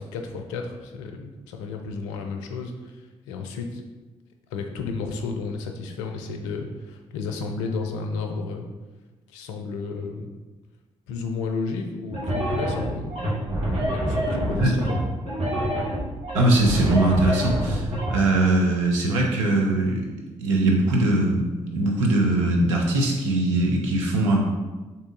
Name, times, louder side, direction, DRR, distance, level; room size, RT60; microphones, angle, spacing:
voice 1, 0.0-3.8 4.5-8.7 9.3-10.3 11.1-13.2 13.9-15.0, left 4 dB, 75° left, 4 dB, 0.4 m, -32 dB
sound 1, 12.1-18.1, equal, 40° right, 1.4 m, -26 dB
voice 2, 16.3-20.1 20.4-24.4, right 2 dB, 80° right, -1 dB, 0.6 m, -21 dB
3.6 x 2.8 x 3.7 m, 1.2 s
figure-of-eight pair, 40°, 16 cm